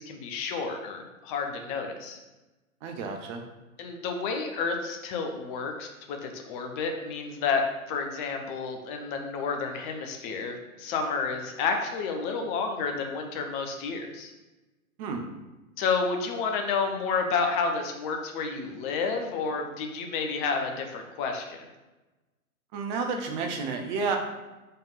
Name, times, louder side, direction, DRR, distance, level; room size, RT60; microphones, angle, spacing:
voice 1, 0.0-2.2 3.8-14.3 15.8-21.6, left 5 dB, 35° left, 3 dB, 1.0 m, -30 dB
voice 2, 2.8-3.5 15.0-15.2 22.7-24.2, right 4 dB, 35° right, 4 dB, 1.0 m, -31 dB
5.6 x 3.6 x 5.6 m, 1.1 s
figure-of-eight pair, 110°, 42 cm